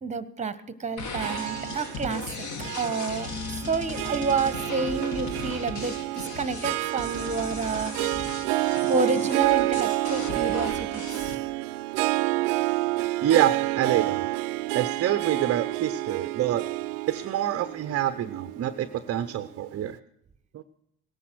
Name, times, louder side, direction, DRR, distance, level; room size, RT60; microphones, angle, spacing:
voice 1, 0.0-2.3 2.7-3.3 3.7-7.9 8.9-11.3, right 4 dB, 15° right, 15 dB, 1.2 m, -29 dB
sound 1, 1.0-11.3, left 4 dB, 40° left, 2.0 m, -37 dB
Harp, 1.2-19.6, right 19 dB, 75° right, 0.7 m, -29 dB
voice 2, 13.2-14.3 14.7-16.7 17.1-20.0 20.5-20.6, right 11 dB, 30° right, 12 dB, 0.7 m, -26 dB
18.0 x 10.0 x 6.2 m, 0.74 s
hypercardioid pair, 85°, 45 cm